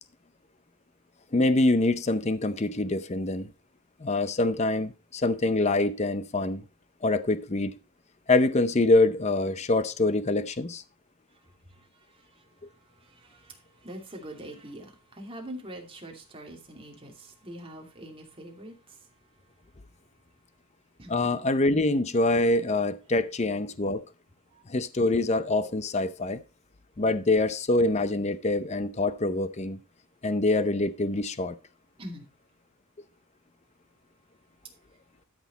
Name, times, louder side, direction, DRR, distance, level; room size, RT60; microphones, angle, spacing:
voice 1, 1.3-3.5 4.0-6.6 7.0-7.8 8.3-10.8 21.1-24.0 24.7-26.4 27.0-29.8 30.2-31.6, left 2 dB, 30° left, 0.6 m, -25 dB
voice 2, 12.1-12.4 12.9-19.1 21.0-21.2 24.5-24.6 32.0-32.2, right 1 dB, 25° right, 2.6 m, -44 dB
12.5 x 6.3 x 4.1 m
head